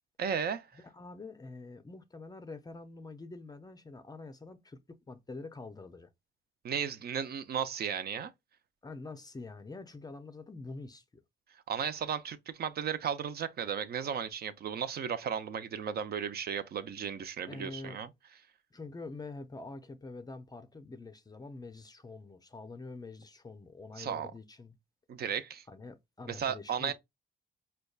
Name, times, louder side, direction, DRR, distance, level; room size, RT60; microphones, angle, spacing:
voice 1, 0.2-0.7 6.6-8.3 11.7-18.1 24.0-24.3 25.1-25.6 26.3-26.9, right 7 dB, 55° right, 0.5 m, -35 dB
voice 2, 0.7-4.8 5.1-6.1 8.8-11.0 17.5-18.0 18.7-24.8 25.7-26.9, left 3 dB, 20° left, 0.5 m, -46 dB
5.0 x 2.2 x 2.3 m
cardioid pair, 90°, 20 cm